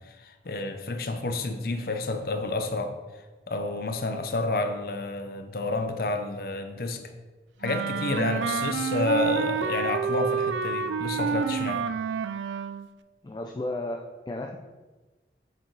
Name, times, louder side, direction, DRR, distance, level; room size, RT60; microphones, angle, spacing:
voice 1, 0.0-2.9 3.5-7.0 7.6-11.8, left 2 dB, 55° left, 6 dB, 0.7 m, -30 dB
Wind instrument woodwind instrument, 7.6-12.9, right 6 dB, 90° right, 0.3 m, -28 dB
voice 2, 13.2-14.6, left 1 dB, 25° left, 2 dB, 0.4 m, -33 dB
6.5 x 4.7 x 3.9 m, 1.3 s
head